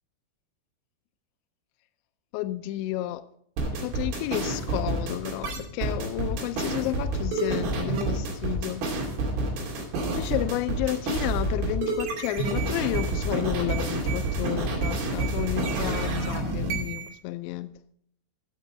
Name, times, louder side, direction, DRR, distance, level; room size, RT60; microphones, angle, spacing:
voice 1, 2.3-3.2 3.7-8.8 10.1-17.7, left 15 dB, 85° left, 2.7 m, -31 dB
sound 1, 3.6-17.1, right 3 dB, 70° right, 5.0 m, -28 dB
15.0 x 7.4 x 5.0 m
omnidirectional pair, 5.7 m